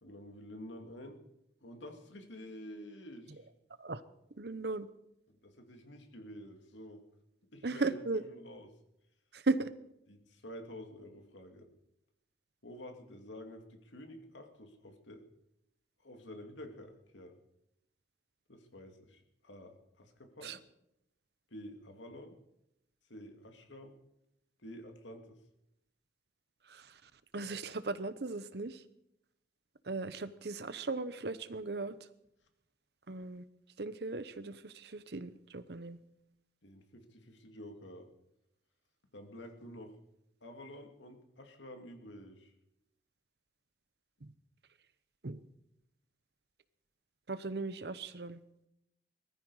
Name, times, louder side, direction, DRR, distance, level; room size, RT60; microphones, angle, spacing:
voice 1, 0.0-1.2 1.6-3.5 5.3-7.0 7.5-8.7 10.1-11.7 12.6-15.2 16.0-17.3 18.5-20.6 21.5-22.4 23.1-24.0 24.6-25.4 36.6-38.1 39.1-40.0 40.4-42.5, equal, 85° left, 5 dB, 2.4 m, -49 dB
voice 2, 4.4-4.9 7.6-8.2 9.3-9.7 20.4-20.6 26.7-26.9 27.3-28.8 29.9-31.9 33.1-33.4 33.8-36.0 45.2-45.4 47.3-48.4, right 3 dB, 60° right, 14 dB, 0.8 m, -37 dB
21.0 x 14.0 x 4.8 m, 0.81 s
head